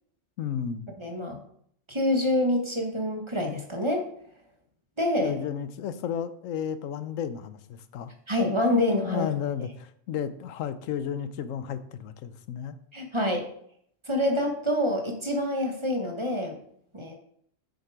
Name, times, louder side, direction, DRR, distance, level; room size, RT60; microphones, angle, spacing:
voice 1, 0.4-0.9 5.2-8.1 9.1-12.8, left 8 dB, 85° left, 12 dB, 1.0 m, -33 dB
voice 2, 1.0-1.4 1.9-4.1 5.0-5.4 8.3-9.3 12.9-13.5 14.1-16.6 16.9-17.2, left 1 dB, 25° right, 3 dB, 1.1 m, -26 dB
6.8 x 6.6 x 4.7 m, 0.66 s
omnidirectional pair, 1.3 m